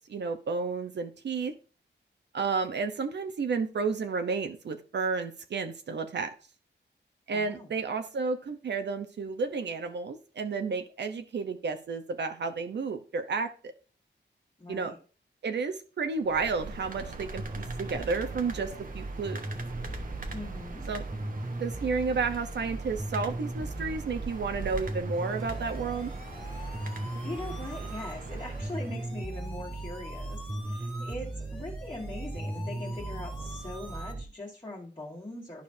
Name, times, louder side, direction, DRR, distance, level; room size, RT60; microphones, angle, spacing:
voice 1, 0.1-1.5 2.3-6.3 7.3-13.7 14.7-14.9 15.4-19.4 20.9-21.0 21.6-26.1, right 4 dB, 65° right, 7 dB, 0.8 m, -31 dB
voice 2, 7.3-7.7 14.6-15.0 20.3-20.9 27.2-30.4 30.6-35.6, left 1 dB, 25° left, -5 dB, 1.6 m, -41 dB
sound 1, 16.2-29.2, right 3 dB, 45° right, 1.0 m, -43 dB
sound 2, 17.4-34.2, right 2 dB, 10° right, 0.4 m, -37 dB
sound 3, 25.1-34.1, left 1 dB, 5° left, 1.9 m, -47 dB
11.5 x 5.1 x 2.7 m, 0.37 s
wide cardioid pair, 120°, 19 cm